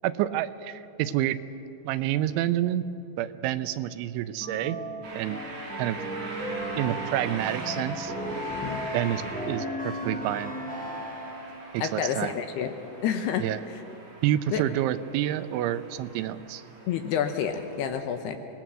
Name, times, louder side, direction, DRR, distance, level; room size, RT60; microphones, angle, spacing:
voice 1, 0.0-1.4 1.8-2.8 3.2-4.8 5.1-5.4 5.8-6.0 6.8-8.1 8.9-10.5 11.7-12.3 13.4-13.6 14.2-16.6, right 13 dB, 85° right, 13 dB, 3.1 m, -28 dB
sound 1, 4.4-11.7, equal, 5° left, 0.6 m, -35 dB
sound 2, 5.0-17.8, right 3 dB, 65° right, 5.6 m, -44 dB
voice 2, 11.8-12.7 13.0-13.8 14.5-14.6 16.9-18.4, left 8 dB, 75° left, 7 dB, 2.6 m, -29 dB
25.5 x 19.0 x 6.2 m, 2.9 s
omnidirectional pair, 5.3 m